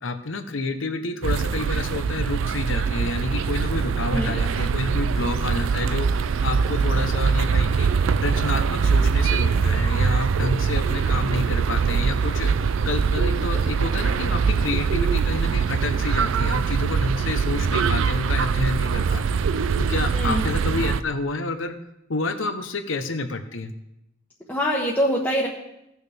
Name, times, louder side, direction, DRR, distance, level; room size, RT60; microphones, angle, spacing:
voice 1, 0.0-6.1 6.4-7.9 8.2-12.5 12.8-19.4 19.8-21.7 22.1-23.7, left 3 dB, 80° left, 8 dB, 0.9 m, -29 dB
sound 1, 1.2-21.0, right 5 dB, 80° right, 0.4 m, -23 dB
voice 2, 20.1-20.4 24.5-25.5, equal, 5° left, -7 dB, 1.2 m, -24 dB
17.0 x 6.4 x 3.5 m, 0.86 s
head